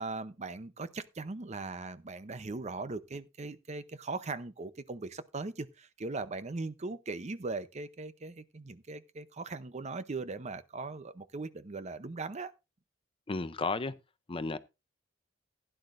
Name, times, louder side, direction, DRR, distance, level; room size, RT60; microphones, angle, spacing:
voice 1, 0.0-12.5, right 3 dB, 35° right, 0.7 m, -39 dB
voice 2, 13.3-13.9 14.3-14.6, left 3 dB, 30° left, 0.6 m, -33 dB
16.0 x 10.0 x 2.5 m
head